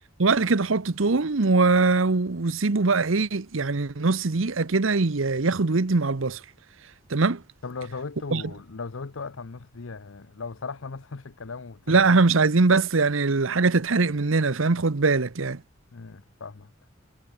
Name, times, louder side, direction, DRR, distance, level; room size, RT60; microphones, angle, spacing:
voice 1, 0.2-6.4 7.1-7.4 8.3-8.4 11.9-15.6, right 3 dB, 75° right, 0.9 m, -22 dB
voice 2, 7.6-12.2 15.9-16.7, left 4 dB, 75° left, 0.8 m, -38 dB
head